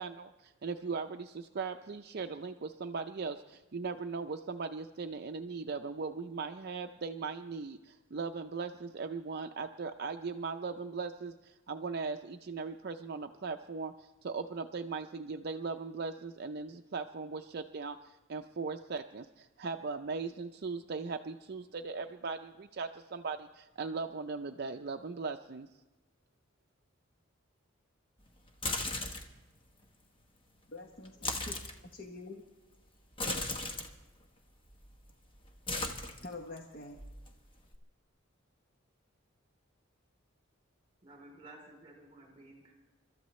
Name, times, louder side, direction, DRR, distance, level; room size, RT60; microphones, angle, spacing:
voice 1, 0.0-25.7, right 4 dB, 50° right, 6 dB, 0.5 m, -39 dB
sound 1, 28.5-29.4 31.1-31.8 33.1-33.9 34.7-35.1 35.4-36.6 37.0-37.8, left 2 dB, 25° left, 1.2 m, -36 dB
voice 2, 30.7-31.6 31.9-32.4 36.2-37.1, left 2 dB, 45° left, 2 dB, 1.0 m, -46 dB
voice 3, 41.0-42.7, right 2 dB, 25° right, 0 dB, 3.3 m, -54 dB
30.0 x 13.5 x 3.1 m, 1.1 s
head